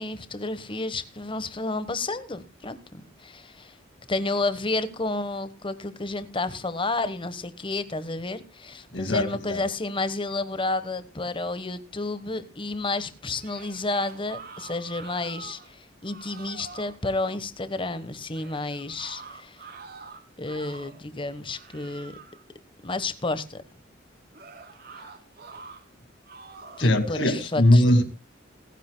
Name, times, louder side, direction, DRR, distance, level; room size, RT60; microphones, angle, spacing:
voice 1, 0.0-3.8 4.1-19.6 20.4-22.1 22.8-23.6 26.8-27.8, left 2 dB, 25° left, 1.2 m, -31 dB
voice 2, 8.9-9.6 26.8-28.0, left 1 dB, 65° left, 2.2 m, -20 dB
sound 1, 13.3-15.7 16.0-17.0 18.3-21.1 21.5-22.4 24.3-25.8 26.2-27.0, right 4 dB, 55° right, 3.0 m, -45 dB
28.0 x 10.0 x 2.2 m
head